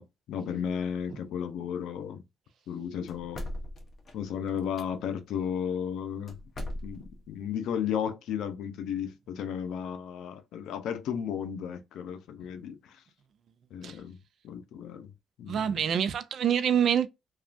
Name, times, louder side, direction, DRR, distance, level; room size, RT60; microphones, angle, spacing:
voice 1, 0.0-2.2 2.7-3.5 4.1-13.0 13.7-14.2 14.4-15.1 15.4-15.7, left 8 dB, 80° left, 0.5 m, -34 dB
sound 1, 3.1-4.9 6.3-7.3, left 1 dB, 45° left, 0.8 m, -39 dB
voice 2, 15.5-17.1, right 8 dB, 65° right, 0.4 m, -26 dB
2.9 x 2.3 x 2.5 m
cardioid pair, 90°, 0 cm